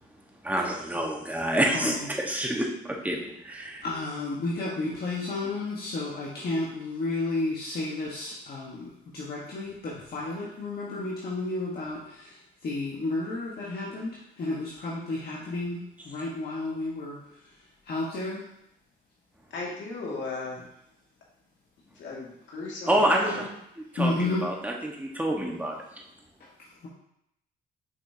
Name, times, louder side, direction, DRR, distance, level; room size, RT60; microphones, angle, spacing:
voice 1, 0.4-3.8 22.9-23.5 23.9-25.7, right 1 dB, 10° right, -1 dB, 1.3 m, -27 dB
voice 2, 1.7-2.1 3.8-18.5 23.9-24.5 26.4-26.9, left 2 dB, 55° left, -6 dB, 1.4 m, -32 dB
voice 3, 19.5-20.6 22.0-23.4, left 3 dB, 70° left, -3 dB, 2.2 m, -36 dB
6.9 x 5.4 x 2.8 m, 0.79 s
cardioid pair, 90°, 20 cm